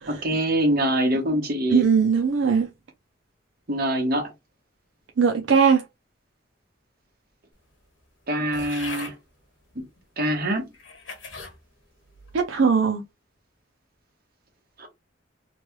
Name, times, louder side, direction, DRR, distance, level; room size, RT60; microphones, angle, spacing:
voice 1, 0.1-1.8 3.7-4.3 8.3-9.1 9.8-9.9 10.2-10.7 14.8-14.9, right 1 dB, 50° right, 1.1 m, -24 dB
voice 2, 1.7-2.7 5.2-5.8 12.3-13.0, right 6 dB, 70° right, 0.5 m, -20 dB
sound 1, 8.5-9.2 10.0-10.1 10.7-11.6 12.1-12.5, left 4 dB, 75° left, 1.3 m, -39 dB
3.1 x 2.2 x 3.0 m
head